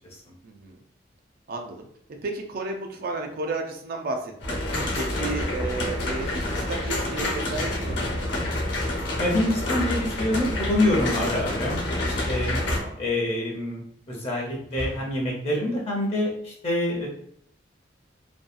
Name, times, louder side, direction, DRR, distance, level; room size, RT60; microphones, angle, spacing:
voice 1, 0.4-0.8 1.5-1.9 2.2-4.6 4.9-8.4 12.6-13.0, right 3 dB, 55° right, 3 dB, 0.4 m, -33 dB
sound 1, 4.4-12.8, left 1 dB, 70° left, 0.9 m, -28 dB
voice 2, 4.7-5.1 9.2-12.6 13.0-13.8 14.1-17.1, left 1 dB, 35° left, -2 dB, 0.6 m, -26 dB
sound 2, 5.3-5.8 7.8-8.4 10.4-10.9 12.6-13.4 14.6-15.3, right 1 dB, 70° right, 1.0 m, -37 dB
2.6 x 2.2 x 2.4 m, 0.66 s
head